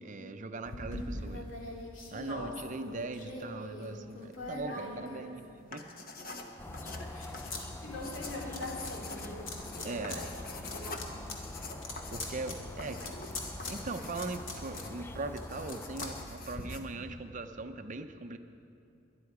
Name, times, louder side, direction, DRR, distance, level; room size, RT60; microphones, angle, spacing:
voice 1, 0.0-1.5 2.1-5.5 5.7-5.9 9.8-10.2 12.1-13.2 13.7-18.4, right 3 dB, 40° right, 8 dB, 0.6 m, -40 dB
sound 1, 0.6-5.7 6.2-7.6 7.9-8.9 9.5-10.2 10.5-16.6, left 2 dB, 90° left, 2.2 m, -43 dB
voice 2, 2.1-2.5 4.7-5.3 5.8-5.9 7.0-10.3 10.7-11.1 13.0-13.3, left 1 dB, 65° left, -2 dB, 3.2 m, -43 dB
sound 2, 5.6-16.8, left 3 dB, 45° left, 1.1 m, -46 dB
sound 3, 6.6-16.3, left 1 dB, 10° left, 0.4 m, -44 dB
22.0 x 10.5 x 4.8 m, 2.7 s
head